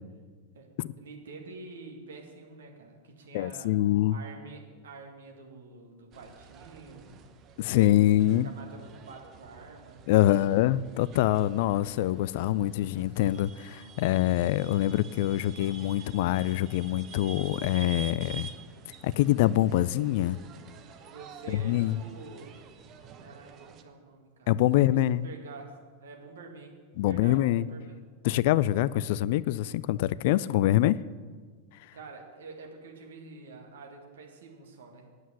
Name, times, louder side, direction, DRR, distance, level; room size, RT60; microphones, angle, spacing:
voice 1, 1.0-3.8 4.1-7.2 7.6-8.3 8.5-10.5 21.1-22.6 23.2-24.5 24.9-28.0 31.9-35.1, right 3 dB, 65° right, 1 dB, 2.1 m, -47 dB
voice 2, 3.3-4.2 7.6-8.5 10.1-18.5 19.0-20.4 21.5-22.0 24.5-25.3 27.0-27.7 28.2-31.0, left 14 dB, 50° left, 19 dB, 0.3 m, -25 dB
sound 1, 6.1-23.8, right 5 dB, 35° right, 0.9 m, -48 dB
9.1 x 8.0 x 8.4 m, 1.5 s
figure-of-eight pair, 90°, 0 cm